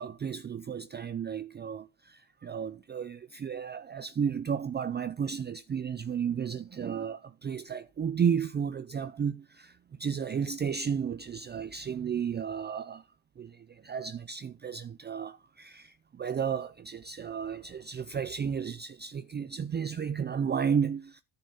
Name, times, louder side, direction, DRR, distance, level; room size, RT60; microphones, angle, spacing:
voice 1, 0.0-13.0 13.4-21.2, right 7 dB, 25° right, 0.5 m, -33 dB
10.5 x 4.0 x 6.8 m
supercardioid pair, 80°, 42 cm